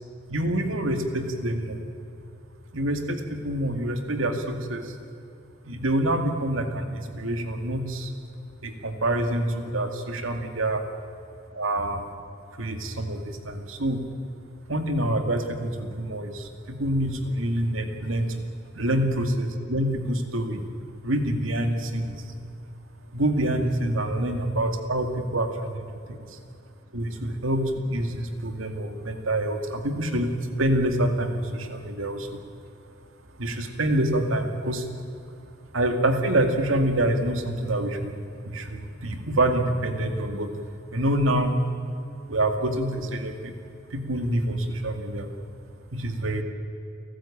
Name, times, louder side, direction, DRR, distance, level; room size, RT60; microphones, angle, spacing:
voice 1, 0.3-1.8 2.7-5.0 5.6-8.1 8.6-10.8 11.5-12.1 12.6-14.0 14.7-18.4 18.7-20.6 21.0-22.3 23.1-26.4 26.9-30.3 30.6-32.4 33.4-34.9 35.7-38.2 38.4-40.5 40.9-41.6 42.3-43.5 43.9-45.3 45.9-46.4, right 1 dB, 85° right, 6 dB, 2.2 m, -26 dB
29.5 x 13.0 x 8.7 m, 2.5 s
head